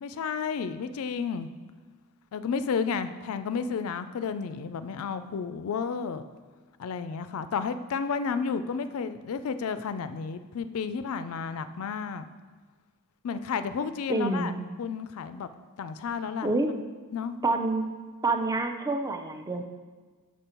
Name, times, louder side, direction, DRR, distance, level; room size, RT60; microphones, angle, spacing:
voice 1, 0.0-1.5 2.3-6.2 6.8-12.3 13.2-15.5 15.8-16.5 17.1-17.4, left 5 dB, 70° left, 11 dB, 0.4 m, -32 dB
voice 2, 14.1-14.6 16.4-16.7 17.4-17.9 18.2-19.6, right 2 dB, 15° right, 5 dB, 0.4 m, -27 dB
6.3 x 5.3 x 4.3 m, 1.4 s
head